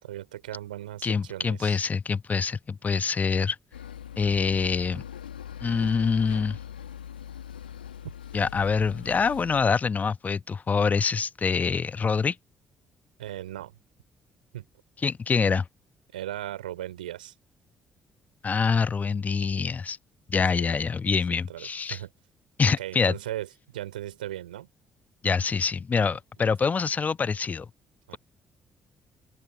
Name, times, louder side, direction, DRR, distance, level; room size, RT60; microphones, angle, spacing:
voice 1, 0.0-1.9 13.2-13.7 14.5-14.7 16.1-17.3 20.5-20.8 21.1-22.1 22.6-24.7 28.1-28.2, right 13 dB, 80° right, 3.5 m, -38 dB
voice 2, 1.0-3.6 4.2-5.0 5.6-6.6 8.3-12.4 15.0-15.7 18.4-20.0 20.3-22.0 22.6-23.1 25.2-27.7, left 5 dB, 35° left, 1.0 m, -25 dB
sound 1, 3.7-9.6, left 9 dB, 80° left, 1.5 m, -41 dB
open air
figure-of-eight pair, 45°, 5 cm